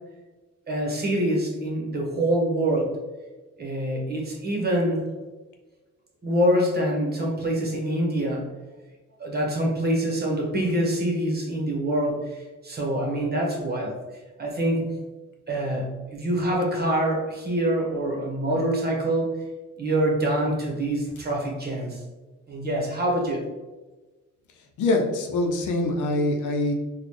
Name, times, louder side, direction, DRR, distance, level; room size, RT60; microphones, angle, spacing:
voice 1, 0.7-2.9 3.6-5.0 6.2-8.5 9.2-13.9 14.4-15.0 15.5-19.3 19.8-22.0 22.5-23.4, right 1 dB, 30° right, -1 dB, 1.1 m, -25 dB
voice 2, 24.8-26.7, left 2 dB, 75° left, 2 dB, 0.7 m, -24 dB
4.0 x 2.3 x 3.1 m, 1.2 s
cardioid pair, 90°, 30 cm